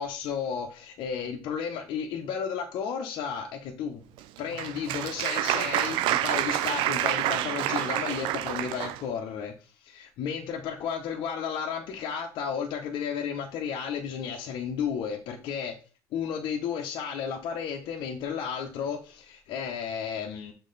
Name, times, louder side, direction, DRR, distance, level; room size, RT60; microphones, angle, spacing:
voice 1, 0.0-4.0 4.4-15.7 16.1-20.5, left 7 dB, 65° left, 0.9 m, -33 dB
Applause, 4.2-9.0, right 13 dB, 70° right, 0.5 m, -28 dB
6.5 x 4.2 x 4.0 m
hypercardioid pair, 75°, 9 cm